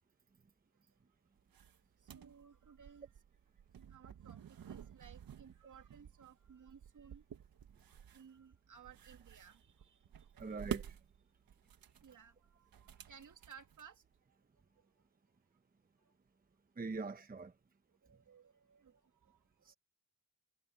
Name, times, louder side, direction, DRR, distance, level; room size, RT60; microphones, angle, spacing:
sound 1, 1.4-14.2, right 9 dB, 75° right, 1.8 m, -50 dB
voice 1, 2.0-3.1 3.9-7.3 8.1-10.5 12.0-14.0 14.8-14.9 16.0-16.1 18.0-19.4 19.7-19.8, right 7 dB, 60° right, 2.4 m, -59 dB
voice 2, 10.4-11.0 16.7-17.6 19.6-19.7, right 4 dB, 25° right, 1.0 m, -43 dB
cardioid pair, 90°, 35 cm